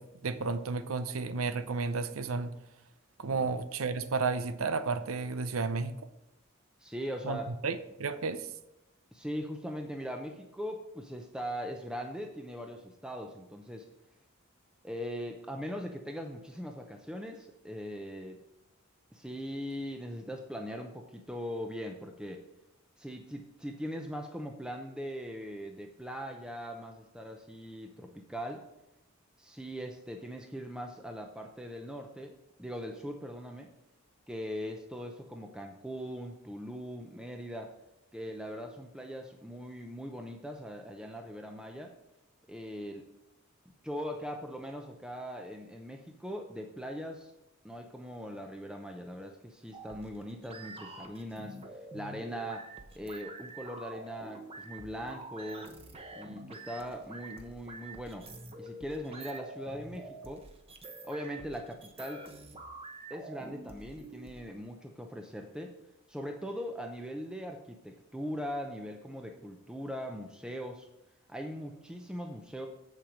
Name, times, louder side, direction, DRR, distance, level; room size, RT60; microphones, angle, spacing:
voice 1, 0.0-2.5 3.2-5.9 7.2-8.5, right 4 dB, 80° right, 12 dB, 0.7 m, -32 dB
voice 2, 6.8-7.5 9.1-13.9 14.8-18.4 19.1-22.4 23.0-28.6 29.4-33.7 34.3-37.7 38.1-41.9 42.5-43.1 43.8-47.3 47.6-55.7 56.1-58.3 58.6-60.5 61.0-62.3 63.1-65.7 66.1-70.9 71.3-72.7, equal, 5° right, 3 dB, 0.6 m, -40 dB
sound 1, 49.7-64.4, right 2 dB, 30° right, 1.0 m, -47 dB
7.7 x 7.3 x 5.1 m, 0.91 s
head